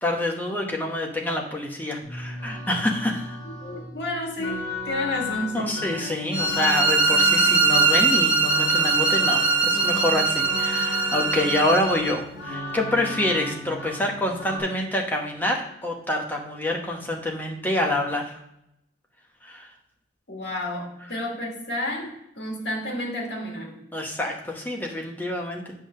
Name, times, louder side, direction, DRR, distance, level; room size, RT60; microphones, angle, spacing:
voice 1, 0.0-3.4 5.5-18.3 19.4-19.7 23.9-25.7, left 1 dB, 10° left, 0 dB, 1.1 m, -27 dB
sound 1, 2.0-14.6, left 4 dB, 40° left, 3.4 m, -34 dB
voice 2, 3.4-5.7 20.3-23.8, left 1 dB, 75° left, 0 dB, 2.1 m, -31 dB
sound 2, 6.3-12.2, right 4 dB, 30° right, 1.0 m, -21 dB
8.6 x 3.4 x 6.6 m, 0.80 s
head